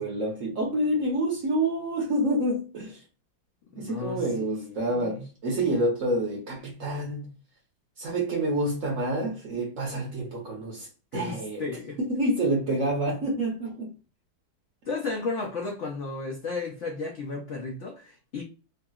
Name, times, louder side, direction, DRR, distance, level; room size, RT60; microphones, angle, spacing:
voice 1, 0.0-3.0 3.8-7.3 8.0-11.6 12.0-14.0, right 1 dB, 55° right, 0.9 m, -28 dB
voice 2, 3.7-5.3 11.1-12.0 14.9-18.4, left 3 dB, 80° left, 0.6 m, -34 dB
3.2 x 2.8 x 2.3 m
omnidirectional pair, 2.1 m